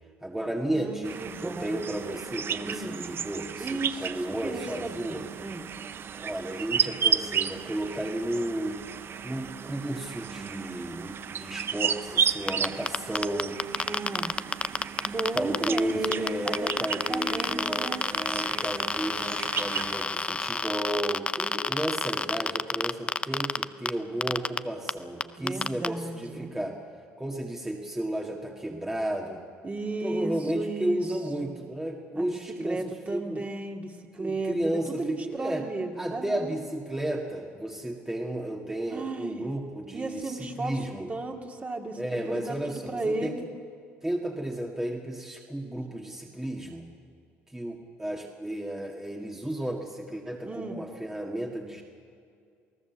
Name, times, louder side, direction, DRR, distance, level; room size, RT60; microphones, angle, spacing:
voice 1, 0.2-5.2 6.1-8.8 9.2-13.6 15.3-26.8 27.2-29.4 30.0-33.4 34.2-35.6 36.0-41.1 42.0-43.4 44.0-46.9 47.5-51.8, right 1 dB, 10° right, 0 dB, 1.9 m, -33 dB
voice 2, 0.7-1.8 2.6-3.0 3.6-5.7 13.9-14.3 15.0-18.0 25.4-26.5 29.6-31.0 31.4-31.5 32.1-32.3 32.6-36.5 38.9-39.5 39.9-43.5 50.4-50.8, right 2 dB, 30° right, 2 dB, 2.5 m, -34 dB
sound 1, 1.0-20.1, right 7 dB, 45° right, 0.8 m, -33 dB
sound 2, 12.5-23.9 24.2-24.6 24.9-25.0 25.2-25.9, left 4 dB, 20° left, 0.6 m, -28 dB
28.5 x 17.5 x 7.2 m, 2.3 s
supercardioid pair, 80°, 5 cm